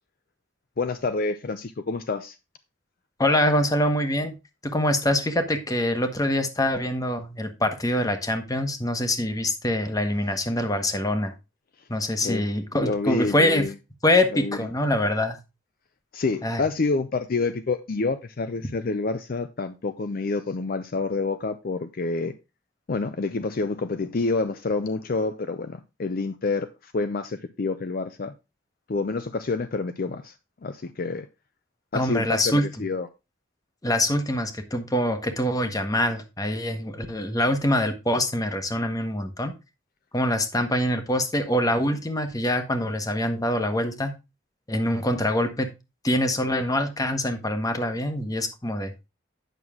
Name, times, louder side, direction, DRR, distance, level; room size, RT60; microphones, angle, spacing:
voice 1, 0.8-2.4 12.2-12.4 12.8-13.7 14.3-14.6 16.1-22.3 22.9-28.3 28.9-30.3 30.6-31.3 31.9-33.1, left 3 dB, 45° left, 0.5 m, -28 dB
voice 2, 3.2-4.4 4.6-11.3 11.9-13.7 14.0-15.4 16.4-16.6 31.9-32.7 33.8-39.5 40.1-44.1 44.7-45.7 46.0-48.9, left 1 dB, 20° left, 1.1 m, -24 dB
9.1 x 6.2 x 3.5 m
head